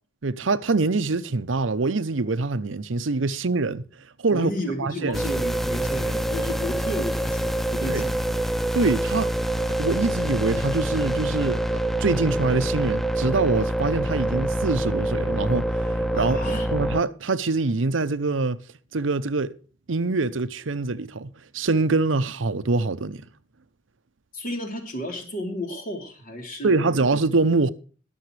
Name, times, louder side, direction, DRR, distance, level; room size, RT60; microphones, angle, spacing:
voice 1, 0.2-3.8 4.2-4.5 4.8-5.2 7.9-8.0 8.7-9.3 9.8-11.6 12.0-18.6 18.9-19.6 19.9-23.2 26.6-27.7, right 3 dB, 75° right, 0.8 m, -24 dB
voice 2, 4.3-8.1 16.1-16.7 24.3-27.1, equal, 45° left, 3.4 m, -32 dB
sound 1, 5.1-17.0, right 1 dB, ahead, 0.4 m, -26 dB
21.5 x 7.2 x 3.3 m
head